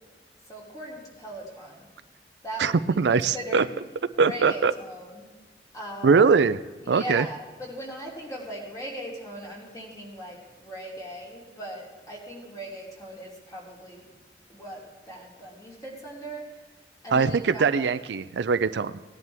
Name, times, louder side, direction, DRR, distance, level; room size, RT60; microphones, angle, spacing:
voice 1, 0.5-1.9 2.4-3.7 4.2-5.3 5.7-6.3 6.8-14.1 14.5-16.5 17.0-17.9, right 1 dB, 20° left, -3 dB, 3.0 m, -39 dB
voice 2, 2.6-3.6 4.2-4.7 6.0-6.6 6.9-7.3 17.1-18.9, right 5 dB, 80° right, 14 dB, 0.4 m, -21 dB
18.5 x 11.0 x 3.5 m, 1.3 s
head